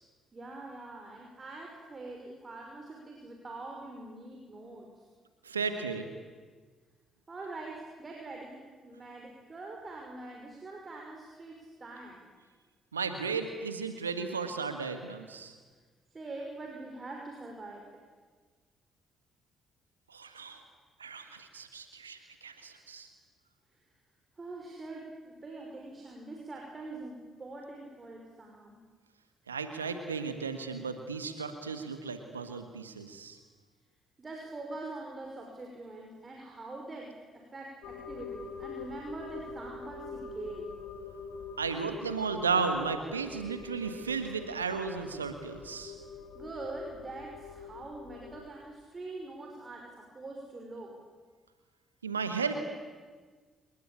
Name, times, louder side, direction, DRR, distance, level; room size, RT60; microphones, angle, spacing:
voice 1, 0.3-5.1 7.3-12.3 16.1-17.9 24.4-28.8 34.2-40.7 46.3-50.9, right 2 dB, 35° right, 0 dB, 5.8 m, -44 dB
voice 2, 5.4-6.1 12.9-15.5 20.1-20.6 21.0-23.1 29.5-33.4 41.6-45.9 52.0-52.5, right 5 dB, 90° right, 8 dB, 1.6 m, -34 dB
sound 1, 37.8-48.5, left 4 dB, 65° left, 2.2 m, -45 dB
29.0 x 20.0 x 8.8 m, 1.5 s
figure-of-eight pair, 45°, 0 cm